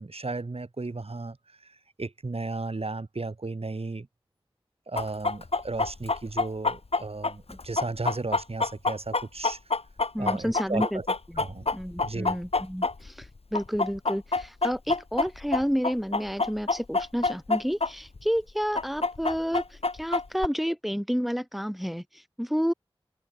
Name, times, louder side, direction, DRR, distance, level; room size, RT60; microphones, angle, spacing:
voice 1, 0.0-1.4 1.6-1.7 2.0-4.1 4.9-9.6 10.2-11.1 11.4-11.7 12.0-12.4, right 3 dB, 80° right, 5.5 m, -34 dB
Chicken rooster, 5.0-13.3 13.5-17.9 18.2-18.3 18.7-20.5, left 3 dB, 85° left, 2.3 m, -26 dB
voice 2, 10.1-11.0 11.3-11.4 11.7-22.7, equal, ahead, 5.7 m, -30 dB
wide cardioid pair, 50°, 10 cm